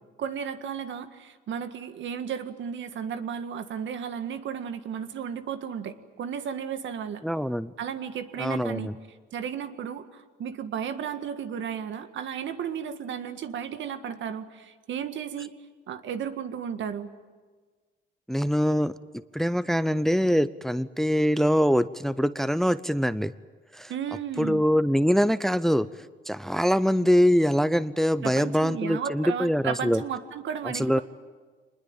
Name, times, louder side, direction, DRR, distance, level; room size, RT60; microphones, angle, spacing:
voice 1, 0.2-7.2 7.8-8.9 9.3-15.5 15.9-17.1 23.9-24.6 28.2-31.0, right 8 dB, 70° right, 9 dB, 1.7 m, -34 dB
voice 2, 7.2-7.7 8.4-8.9 18.3-18.9 19.3-23.3 23.7-23.9 24.4-25.9 26.3-30.0 30.7-31.0, equal, ahead, 15 dB, 0.7 m, -23 dB
25.5 x 20.5 x 9.0 m, 1.4 s
cardioid pair, 90°, 20 cm